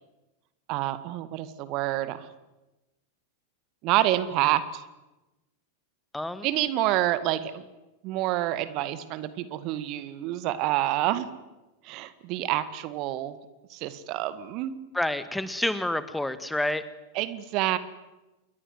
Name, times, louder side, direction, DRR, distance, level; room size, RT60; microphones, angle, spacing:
voice 1, 0.7-2.3 3.8-4.8 6.4-7.6 8.0-11.3 11.8-13.4 13.7-14.8 17.1-17.8, right 14 dB, 40° right, 14 dB, 2.0 m, -28 dB
voice 2, 6.1-6.5 14.9-16.8, left 1 dB, 5° left, 13 dB, 1.7 m, -28 dB
28.0 x 22.0 x 9.6 m, 1.0 s
figure-of-eight pair, 90°, 0 cm